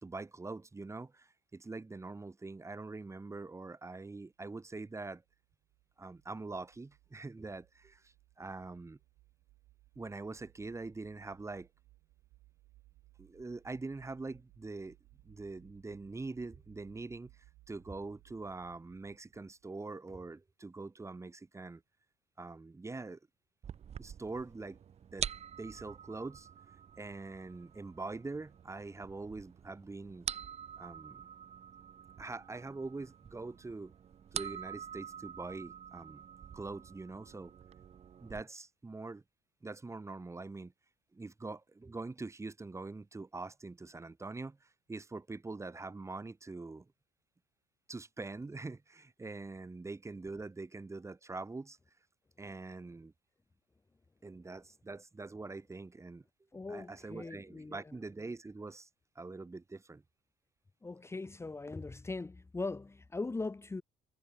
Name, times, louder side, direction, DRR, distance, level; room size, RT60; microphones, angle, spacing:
voice 1, 0.0-5.2 6.0-9.0 10.0-11.7 13.2-15.0 15.3-17.3 17.7-21.8 22.4-23.2 24.0-24.8 25.1-25.3 25.6-26.5 27.0-30.3 30.8-31.2 32.2-33.9 34.3-36.2 36.5-37.5 38.2-39.2 39.6-40.7 41.1-44.6 44.9-46.8 47.9-51.8 52.4-53.1 54.2-56.2 56.7-58.9 59.2-60.0, right 3 dB, 15° right, 2.3 m, -44 dB
sound 1, 4.7-19.7, right 19 dB, 85° right, 4.1 m, -64 dB
sound 2, 23.6-38.4, right 8 dB, 40° right, 0.8 m, -46 dB
voice 2, 56.5-57.9 60.8-63.8, left 3 dB, 15° left, 1.2 m, -40 dB
cardioid pair, 110°, 17 cm